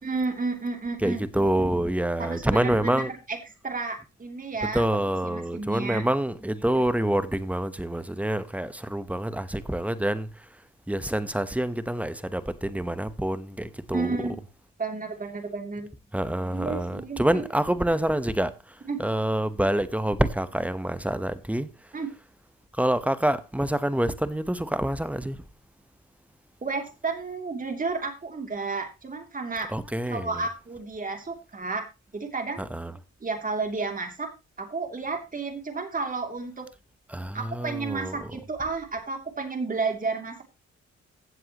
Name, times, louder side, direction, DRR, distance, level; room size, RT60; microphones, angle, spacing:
voice 1, 0.0-1.2 2.2-3.4 3.6-4.8 5.2-6.1 13.9-14.4 14.8-15.9 16.5-17.5 18.9-19.0 21.9-22.1 26.6-29.7 30.1-31.9 32.1-32.6 33.2-34.3 34.6-36.7 37.3-40.4, right 4 dB, 25° right, 2.7 m, -31 dB
voice 2, 1.0-3.1 4.7-10.5 10.9-14.2 16.1-21.7 22.8-25.4 29.7-30.3 32.6-32.9 37.1-38.3, right 1 dB, 5° right, 0.9 m, -27 dB
16.0 x 7.7 x 2.9 m
cardioid pair, 90°, 30 cm